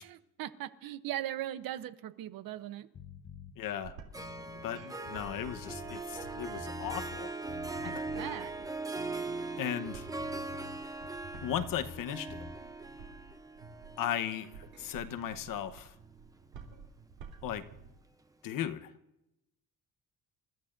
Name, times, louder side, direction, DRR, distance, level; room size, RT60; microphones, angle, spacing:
voice 1, 0.0-2.9 7.8-8.5, right 12 dB, 65° right, 12 dB, 0.9 m, -39 dB
sound 1, 2.9-3.5 4.1-7.2 7.5-8.3 8.9-12.0 12.3-12.5, left 6 dB, 30° left, 1.0 m, -49 dB
voice 2, 3.6-4.0 4.6-7.3 7.8-8.0 9.6-10.1 11.4-12.4 14.0-15.9 17.4-17.6 18.4-18.9, left 10 dB, 60° left, 10 dB, 1.1 m, -36 dB
sound 2, 3.6-18.0, right 5 dB, 80° right, 3.1 m, -52 dB
Harp, 4.1-15.6, right 3 dB, 10° right, 0.7 m, -41 dB
29.0 x 14.0 x 2.6 m, 0.90 s
cardioid pair, 135°, 37 cm